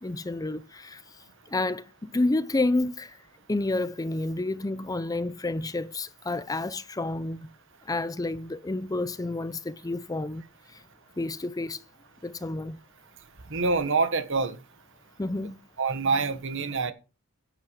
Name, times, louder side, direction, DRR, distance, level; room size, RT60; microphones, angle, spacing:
voice 1, 0.0-1.0 1.5-3.1 3.5-7.5 7.9-10.4 11.2-11.8 12.2-12.8 15.2-15.6, left 2 dB, 15° left, 0.5 m, -29 dB
voice 2, 13.5-14.6 15.8-16.9, right 4 dB, 60° right, 1.4 m, -26 dB
10.5 x 8.2 x 5.2 m
head